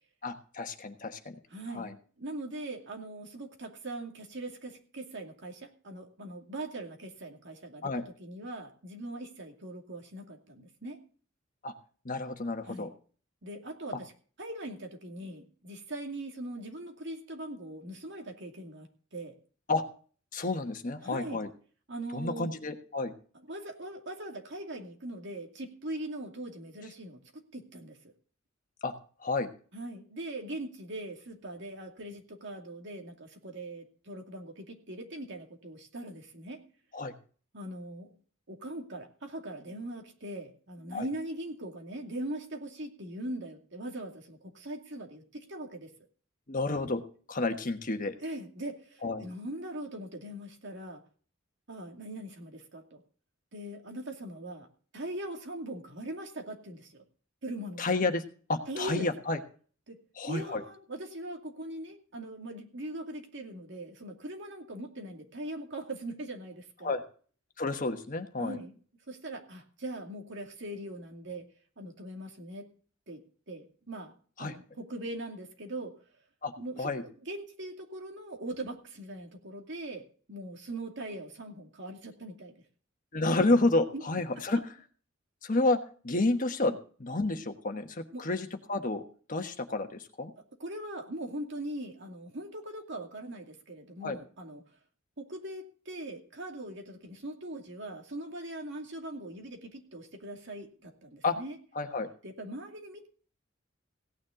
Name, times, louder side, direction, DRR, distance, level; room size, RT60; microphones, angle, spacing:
voice 1, 0.2-1.4 1.7-1.9 7.8-8.1 11.6-11.7 12.0-12.9 19.7-19.8 20.3-21.5 22.1-23.1 28.8-28.9 29.2-29.5 36.9-37.1 40.9-41.0 46.5-47.0 47.3-48.1 49.0-49.2 57.8-58.2 58.5-59.4 60.2-60.6 66.8-67.0 67.6-68.6 74.4-74.5 76.4-76.5 76.8-77.0 83.1-84.6 85.4-85.8 86.0-86.7 87.0-89.0 89.3-90.3 94.0-94.2 101.2-101.4 101.7-102.1, left 2 dB, 40° left, 6 dB, 1.3 m, -30 dB
voice 2, 1.5-1.9 2.2-7.9 8.2-11.0 12.7-12.9 13.4-14.1 14.4-18.9 19.1-19.3 21.0-21.4 21.9-22.6 23.5-28.0 29.7-36.6 37.5-38.1 38.5-45.9 48.2-51.0 51.7-53.0 53.5-54.7 54.9-57.0 57.4-57.9 58.7-59.1 59.9-60.0 60.2-66.9 68.4-68.8 69.1-71.4 71.8-72.7 73.1-74.1 74.4-75.9 76.6-82.6 83.9-84.0 86.7-86.8 88.1-88.3 90.6-94.6 95.2-101.6 102.2-103.1, right 1 dB, 65° right, 3 dB, 2.4 m, -41 dB
17.0 x 9.7 x 3.8 m, 0.42 s
head